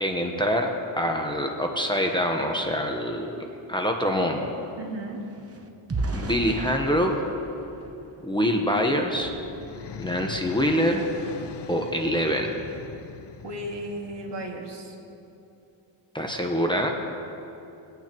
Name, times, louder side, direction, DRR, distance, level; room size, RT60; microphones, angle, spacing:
voice 1, 0.0-4.5 6.1-7.2 8.2-9.3 10.0-11.0 11.7-12.6 16.1-16.9, equal, 10° left, 2 dB, 1.0 m, -25 dB
sound 1, 3.4-8.8 9.3-9.5 9.9-10.1, right 2 dB, 30° right, 1.0 m, -36 dB
voice 2, 4.8-5.2 13.4-14.9, right 1 dB, 60° right, 0 dB, 2.0 m, -35 dB
sound 2, 8.9-14.8, left 6 dB, 55° left, 0.8 m, -42 dB
20.0 x 9.0 x 3.0 m, 2.9 s
cardioid pair, 85°, 48 cm